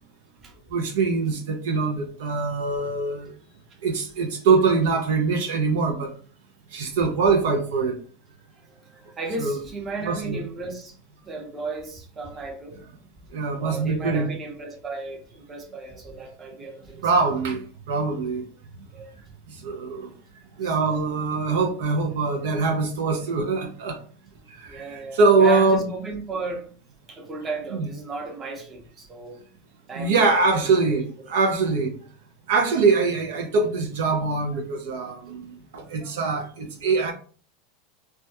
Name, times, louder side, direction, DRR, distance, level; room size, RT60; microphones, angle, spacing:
voice 1, 0.7-3.3 3.8-6.1 6.7-8.0 9.4-9.6 10.0-10.4 13.3-14.3 17.0-18.4 19.5-20.1 20.6-24.0 24.5-25.9 27.7-27.9 29.9-31.9 32.5-37.1, right 4 dB, 80° right, 0.4 m, -23 dB
voice 2, 8.6-11.0 11.2-12.8 13.6-17.1 18.9-19.1 20.6-21.2 24.6-26.7 27.1-29.4 29.9-31.0 35.8-36.4, right 3 dB, 25° right, 0.7 m, -35 dB
2.2 x 2.2 x 2.8 m
supercardioid pair, 115°, 0 cm